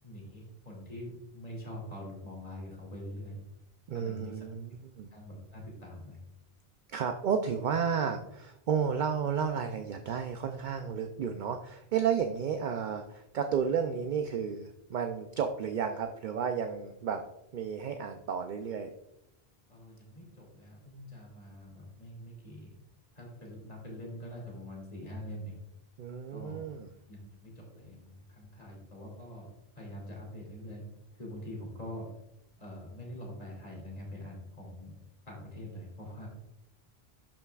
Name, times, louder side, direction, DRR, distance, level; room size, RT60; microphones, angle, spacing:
voice 1, 0.0-3.4 3.9-4.5 5.1-6.2 19.7-22.7 23.1-25.6 26.3-26.7 27.1-29.5 29.7-30.8 31.1-32.1 32.6-35.0 35.3-36.3, equal, 40° left, -2 dB, 2.6 m, -44 dB
voice 2, 3.9-5.1 6.9-17.2 17.5-18.9 26.0-26.9, right 7 dB, 55° right, 6 dB, 0.6 m, -32 dB
12.0 x 5.7 x 2.4 m, 0.83 s
omnidirectional pair, 1.0 m